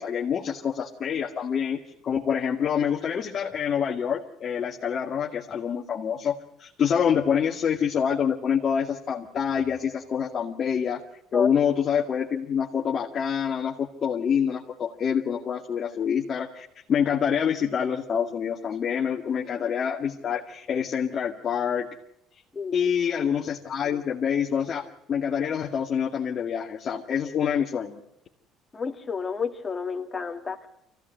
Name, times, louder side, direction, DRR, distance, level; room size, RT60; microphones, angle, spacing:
voice 1, 0.0-11.0 11.3-21.9 22.7-28.0, left 7 dB, 45° left, -1 dB, 2.1 m, -26 dB
voice 2, 22.5-22.9 28.7-30.7, left 5 dB, 25° left, 4 dB, 2.4 m, -30 dB
24.0 x 16.5 x 9.2 m, 0.82 s
cardioid pair, 100°, 0 cm